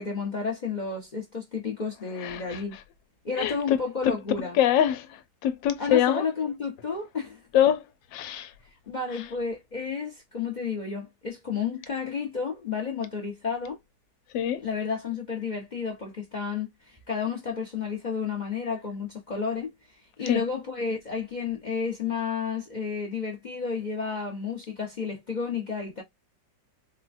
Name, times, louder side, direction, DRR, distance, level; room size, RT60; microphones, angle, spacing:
voice 1, 0.0-2.8 3.2-4.6 5.8-7.5 8.9-13.8 14.6-19.7 20.2-26.0, left 5 dB, 45° left, 0.6 m, -31 dB
voice 2, 2.2-2.6 3.4-3.8 4.5-6.2 7.5-7.8 8.1-8.5 14.3-14.6 20.3-20.4, left 10 dB, 90° left, 1.3 m, -24 dB
4.2 x 2.1 x 2.4 m
omnidirectional pair, 2.0 m